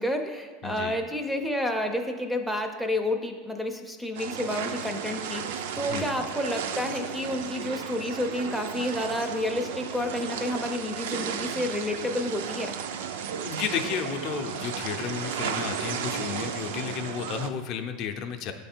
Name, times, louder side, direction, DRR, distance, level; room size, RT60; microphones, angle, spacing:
voice 1, 0.0-12.8 15.5-15.6, left 1 dB, ahead, 5 dB, 0.4 m, -30 dB
voice 2, 0.6-1.0 5.8-6.1 13.4-18.5, left 7 dB, 50° left, 6 dB, 0.5 m, -32 dB
sound 1, 4.2-17.5, right 7 dB, 85° right, 0.4 m, -34 dB
8.7 x 3.3 x 4.4 m, 1.4 s
supercardioid pair, 140°, 0 cm